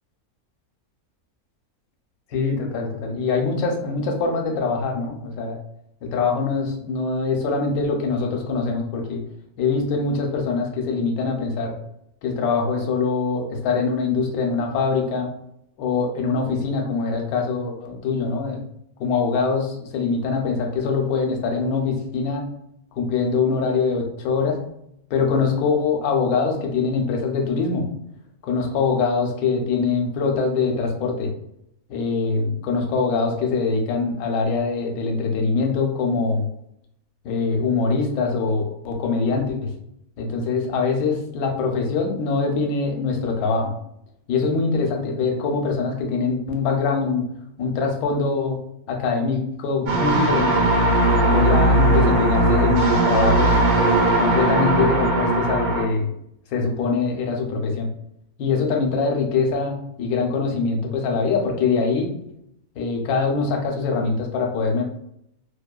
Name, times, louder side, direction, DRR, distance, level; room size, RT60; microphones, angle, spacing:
voice 1, 2.3-5.6 6.0-9.2 9.6-11.8 12.2-15.3 15.8-18.6 19.0-22.4 22.9-24.6 25.1-27.8 28.4-31.3 31.9-36.4 37.2-39.7 40.2-43.7 44.3-47.2 47.6-48.6 48.9-50.6 51.2-53.6 54.2-56.1 56.5-57.9 58.4-62.1 62.8-64.8, left 4 dB, 80° left, 2 dB, 1.0 m, -23 dB
sound 1, 49.9-55.9, right 1 dB, 65° right, 0.9 m, -18 dB
2.7 x 2.2 x 2.3 m, 0.75 s
omnidirectional pair, 1.6 m